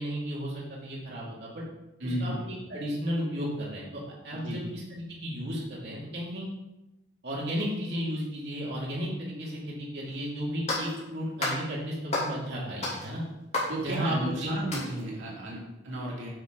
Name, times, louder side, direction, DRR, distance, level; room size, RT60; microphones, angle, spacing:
voice 1, 0.0-1.6 2.0-2.3 2.7-6.5 7.2-13.2 13.8-14.6, equal, 55° right, -6 dB, 2.5 m, -34 dB
voice 2, 2.0-2.4 4.3-4.6 13.7-16.3, right 1 dB, 80° right, -5 dB, 2.6 m, -33 dB
sound 1, 10.1-10.2 10.7-11.0 11.4-11.6 12.1-12.4 12.8-14.3 14.7-15.0, left 2 dB, 35° left, 2.8 m, -32 dB
9.4 x 6.5 x 3.9 m, 0.97 s
head